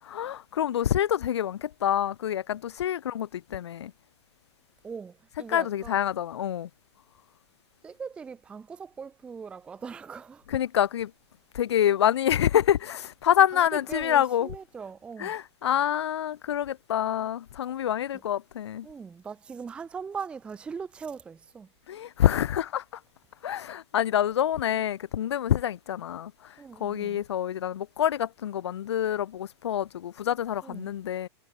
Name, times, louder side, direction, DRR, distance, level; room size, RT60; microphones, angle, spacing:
voice 1, 0.0-3.9 5.5-6.7 10.5-11.1 11.5-14.5 15.2-18.9 21.9-22.8 23.4-26.5 26.8-31.3, left 10 dB, 80° left, 1.2 m, -27 dB
voice 2, 4.8-6.0 7.8-10.4 13.5-13.6 13.9-15.3 18.8-21.7 26.6-27.2 30.6-30.9, right 6 dB, 5° right, 0.6 m, -40 dB
supercardioid pair, 165°, 14 cm